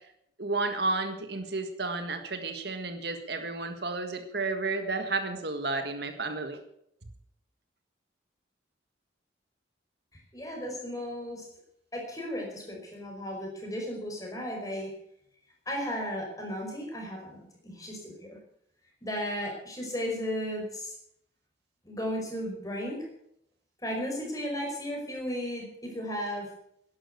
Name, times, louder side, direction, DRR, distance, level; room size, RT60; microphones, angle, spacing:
voice 1, 0.4-6.6, right 3 dB, 60° right, 6 dB, 1.7 m, -32 dB
voice 2, 10.3-11.4 11.9-14.9 15.7-18.4 19.0-20.9 21.8-23.0 23.8-26.5, equal, 20° left, 0 dB, 5.1 m, -35 dB
12.5 x 11.0 x 8.4 m, 0.74 s
head